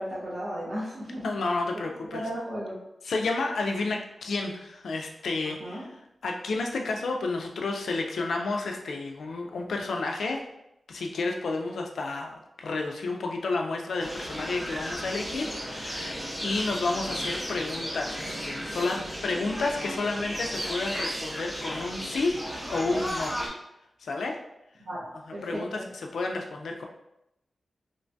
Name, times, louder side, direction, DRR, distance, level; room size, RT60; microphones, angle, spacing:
voice 1, 0.0-1.2 2.1-2.8 5.4-5.8 24.8-25.9, equal, 50° right, -11 dB, 0.9 m, -35 dB
voice 2, 1.2-2.2 3.0-5.9 6.2-10.4 10.9-23.4 24.0-24.4 25.3-26.9, left 3 dB, 85° left, 2 dB, 0.3 m, -31 dB
sound 1, 14.0-23.5, equal, 10° right, 0.5 m, -34 dB
3.0 x 2.2 x 2.6 m, 0.84 s
wide cardioid pair, 175°, 0 cm